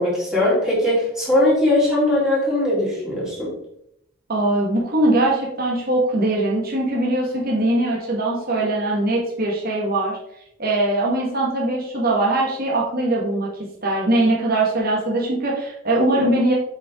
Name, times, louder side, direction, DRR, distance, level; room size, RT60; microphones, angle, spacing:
voice 1, 0.0-3.5, left 1 dB, 5° right, -8 dB, 3.3 m, -20 dB
voice 2, 4.3-10.2 10.6-13.5 13.8-16.5, right 1 dB, 45° right, -3 dB, 1.7 m, -21 dB
7.7 x 5.8 x 3.7 m, 0.77 s
head